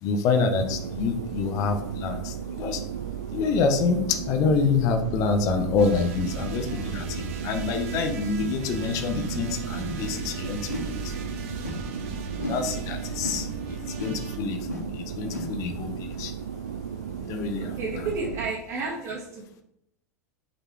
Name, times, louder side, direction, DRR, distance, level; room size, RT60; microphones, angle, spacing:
voice 1, 0.0-2.8 3.3-11.2 11.9-16.3 17.2-18.0, left 5 dB, 40° left, 6 dB, 0.8 m, -27 dB
sound 1, 0.6-18.5, right 8 dB, 70° right, 0.4 m, -35 dB
sound 2, 5.8-14.4, right 3 dB, 55° right, 1.0 m, -38 dB
sound 3, 8.4-8.6 9.1-9.3 9.8-10.1 10.7-11.0 11.6-11.9 12.4-12.6 13.2-13.5 13.9-14.2 14.7-14.9 15.3-15.6 16.1-16.2, left 2 dB, 80° left, 1.8 m, -35 dB
voice 2, 17.8-19.6, right 3 dB, 35° right, -4 dB, 1.7 m, -32 dB
6.5 x 4.2 x 4.6 m, 0.77 s
figure-of-eight pair, 85°, 9 cm